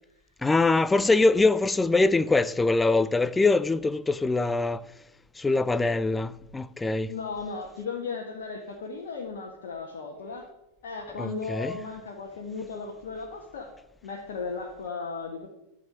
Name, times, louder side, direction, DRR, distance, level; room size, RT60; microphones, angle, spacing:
voice 1, 0.4-4.9 5.4-7.1 11.2-11.8, left 3 dB, 10° left, 0.5 m, -23 dB
voice 2, 7.1-10.5 10.8-13.7 14.0-15.5, left 4 dB, 55° left, 1.7 m, -36 dB
12.0 x 5.7 x 9.1 m
figure-of-eight pair, 90°, 0 cm